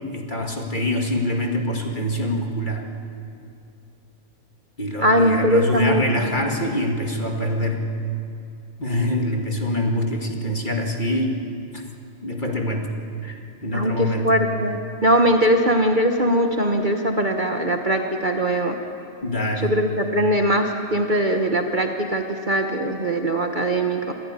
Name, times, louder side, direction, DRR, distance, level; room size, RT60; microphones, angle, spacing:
voice 1, 0.1-2.8 4.8-7.8 8.8-11.4 11.7-11.8 12.2-12.9 13.2-14.3 19.2-19.8, left 1 dB, 35° left, 1 dB, 2.3 m, -25 dB
voice 2, 5.0-6.3 13.7-18.8 19.6-24.1, right 1 dB, 35° right, 3 dB, 1.3 m, -21 dB
26.0 x 14.5 x 9.9 m, 2.5 s
omnidirectional pair, 1.5 m